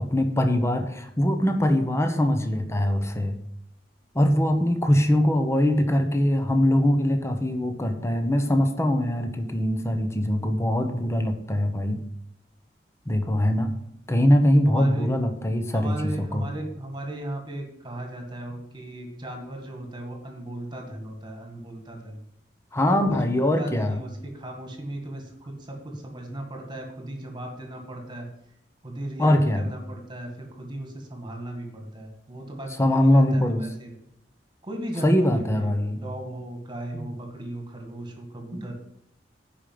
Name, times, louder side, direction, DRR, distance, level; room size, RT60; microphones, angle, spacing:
voice 1, 0.0-3.4 4.1-12.0 13.1-13.7 14.1-16.5 22.7-24.0 29.2-29.7 32.8-33.6 35.0-36.0 38.5-38.7, left 1 dB, 15° left, 6 dB, 1.0 m, -22 dB
voice 2, 14.7-15.1 15.7-22.2 22.9-28.3 28.8-34.0 34.6-38.7, right 1 dB, 25° right, 2 dB, 2.0 m, -37 dB
10.0 x 5.1 x 7.7 m, 0.75 s
head